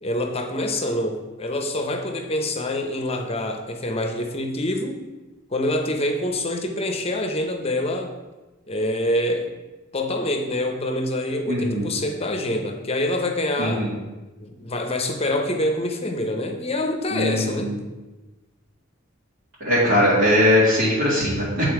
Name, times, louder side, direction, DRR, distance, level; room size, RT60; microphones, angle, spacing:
voice 1, 0.0-5.0 5.5-8.1 8.7-9.5 9.9-13.9 14.4-17.8, left 1 dB, 30° left, 5 dB, 0.7 m, -26 dB
voice 2, 11.5-11.9 13.6-13.9 17.1-17.8 19.6-21.7, left 1 dB, 70° right, -8 dB, 2.0 m, -20 dB
8.4 x 4.0 x 4.7 m, 1.1 s
head